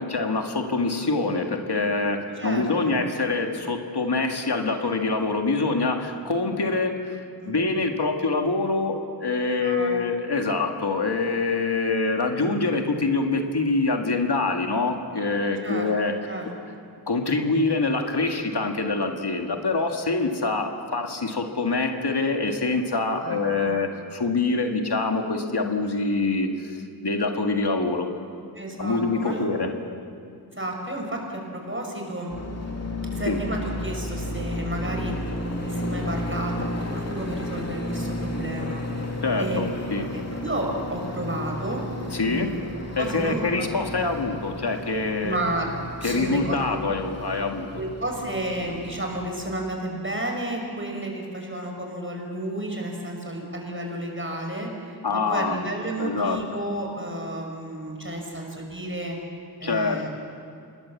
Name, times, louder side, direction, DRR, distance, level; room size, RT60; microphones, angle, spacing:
voice 1, 0.0-7.2 7.5-16.1 17.1-28.1 28.8-29.7 33.3-33.4 39.2-40.0 42.1-42.5 43.0-45.4 46.0-47.8 55.0-55.6 56.0-56.4 59.6-60.1, left 3 dB, 90° left, 3 dB, 2.0 m, -25 dB
voice 2, 2.4-3.0 7.4-7.6 9.6-10.0 15.6-15.9 16.3-16.4 23.2-23.8 28.5-29.5 30.6-32.3 33.1-35.1 35.6-38.8 39.4-39.6 40.1-42.6 43.0-43.7 45.2-45.7 46.0-46.8 47.7-59.2 59.6-60.1, right 1 dB, 30° right, 1 dB, 5.5 m, -32 dB
sound 1, 32.3-49.2, left 1 dB, 40° left, 2.9 m, -33 dB
26.5 x 20.0 x 7.3 m, 2.3 s
wide cardioid pair, 60°, 39 cm